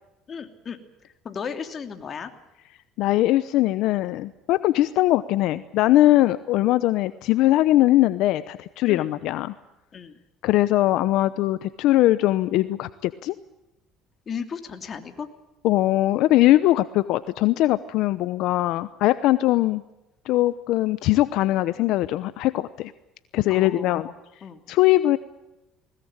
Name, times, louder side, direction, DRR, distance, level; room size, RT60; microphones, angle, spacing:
voice 1, 0.3-2.3 8.9-9.1 9.9-10.2 14.3-15.3 23.5-24.1 24.4-24.6, left 6 dB, 40° left, 7 dB, 3.0 m, -35 dB
voice 2, 3.0-9.5 10.4-13.3 15.6-19.8 20.2-22.9 23.3-24.1 24.7-25.2, left 15 dB, 70° left, 14 dB, 0.8 m, -21 dB
21.0 x 20.0 x 8.8 m, 0.99 s
cardioid pair, 105°, 0 cm